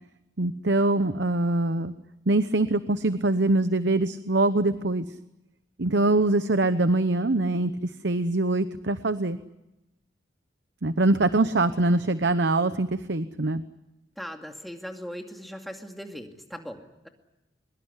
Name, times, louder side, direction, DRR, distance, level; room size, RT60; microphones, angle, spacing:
voice 1, 0.4-1.9 2.3-5.1 5.8-9.4 10.8-13.6, right 2 dB, 70° right, 11 dB, 0.9 m, -23 dB
voice 2, 14.2-17.1, equal, ahead, 3 dB, 2.4 m, -39 dB
23.0 x 22.0 x 9.8 m, 0.94 s
head